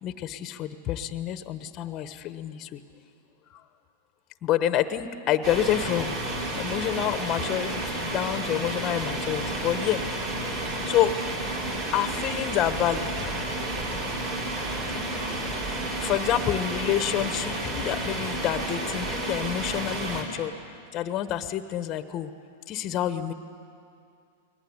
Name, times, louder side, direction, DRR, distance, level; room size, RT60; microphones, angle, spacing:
voice 1, 0.0-2.8 4.4-6.1 6.5-10.0 10.9-11.1 11.9-13.1 16.0-20.5 20.9-22.3 22.7-23.3, left 11 dB, 35° left, 11 dB, 1.2 m, -28 dB
sound 1, 5.4-20.2, right 1 dB, 45° right, 4.6 m, -31 dB
21.5 x 18.5 x 9.7 m, 2.5 s
hypercardioid pair, 115°, 0 cm